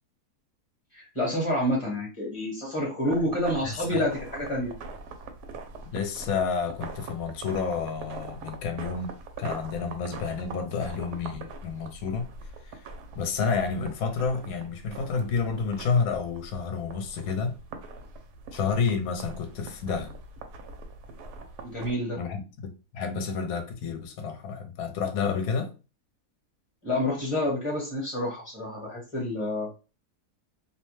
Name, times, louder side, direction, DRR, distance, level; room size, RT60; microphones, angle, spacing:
voice 1, 0.9-4.8 21.6-22.2 26.8-29.7, left 1 dB, 25° left, 0.9 m, -28 dB
sound 1, 3.1-21.9, right 3 dB, 90° right, 1.1 m, -43 dB
voice 2, 3.6-4.1 5.9-9.1 9.4-12.3 13.1-17.6 18.5-20.1 22.2-25.7, left 5 dB, 70° left, 1.0 m, -30 dB
2.7 x 2.1 x 3.1 m
omnidirectional pair, 1.7 m